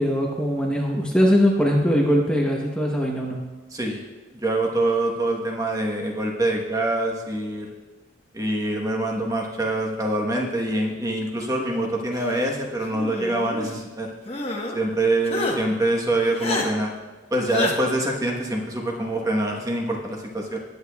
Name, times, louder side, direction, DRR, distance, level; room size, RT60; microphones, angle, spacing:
voice 1, 0.0-3.4, equal, 5° left, -2 dB, 0.9 m, -21 dB
voice 2, 4.3-7.7 8.3-14.1 14.7-16.9 17.3-20.6, right 1 dB, 15° right, 0 dB, 1.1 m, -25 dB
sound 1, 12.9-13.7 14.3-14.8 15.3-15.6 16.4-16.7 17.5-17.7, left 2 dB, 30° left, 1.1 m, -27 dB
20.0 x 8.2 x 2.3 m, 1.2 s
head